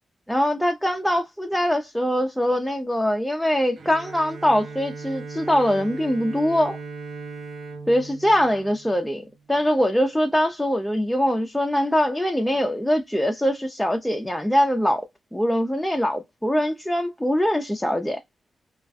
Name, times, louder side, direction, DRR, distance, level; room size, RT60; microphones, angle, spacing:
voice 1, 0.3-6.8 7.9-9.2 9.5-15.0 15.3-18.2, equal, 5° left, 0.4 m, -22 dB
Bowed string instrument, 3.8-9.4, right 4 dB, 55° right, 0.6 m, -38 dB
2.3 x 2.1 x 2.4 m
cardioid pair, 70°, 0 cm